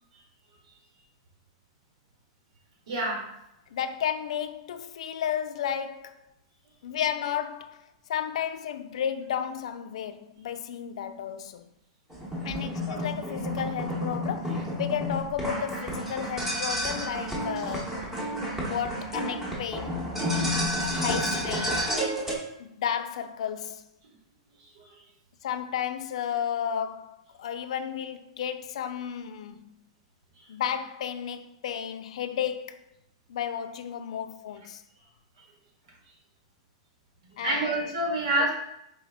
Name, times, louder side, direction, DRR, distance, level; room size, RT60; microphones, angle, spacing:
voice 1, 2.9-3.2 24.7-24.9 30.4-30.5 37.4-38.5, right 2 dB, 80° right, 1.7 m, -27 dB
voice 2, 3.7-6.2 6.8-11.7 12.4-18.0 18.7-20.0 20.8-21.9 22.6-23.8 25.4-29.7 30.5-32.8 33.3-34.8 37.4-37.9, left 9 dB, 75° left, 0.4 m, -33 dB
sound 1, 12.1-22.4, equal, 5° right, 0.9 m, -30 dB
4.4 x 3.4 x 3.5 m
supercardioid pair, 160°, 3 cm